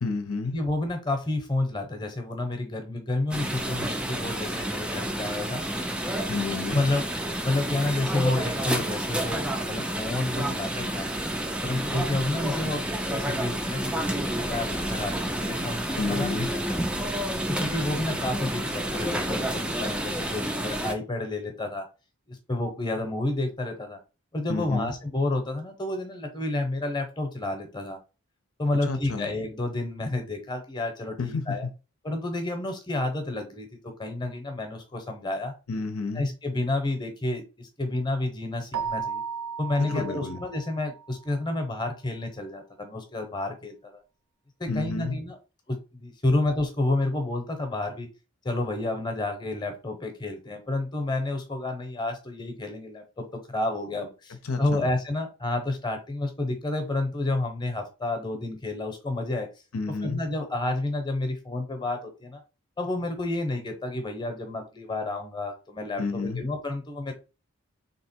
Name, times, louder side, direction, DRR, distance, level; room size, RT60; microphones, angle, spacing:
voice 1, 0.0-0.6 6.3-6.8 15.9-16.5 24.5-24.9 28.8-29.3 31.2-31.7 35.7-36.3 39.8-40.4 44.7-45.2 54.3-54.9 59.7-60.2 66.0-66.4, left 4 dB, 85° left, 0.7 m, -30 dB
voice 2, 0.5-5.6 6.7-7.0 7.4-11.1 11.6-16.6 16.9-17.0 17.5-21.9 22.3-24.0 24.3-28.0 28.6-31.7 32.0-35.5 36.1-39.2 39.6-44.0 44.6-45.4 45.7-48.1 48.4-59.5 60.0-62.4 62.8-67.1, left 2 dB, 20° left, 0.8 m, -30 dB
sound 1, 3.3-20.9, right 1 dB, 5° right, 0.4 m, -30 dB
Keyboard (musical), 38.7-41.2, right 6 dB, 75° right, 0.6 m, -34 dB
3.4 x 3.0 x 4.4 m
head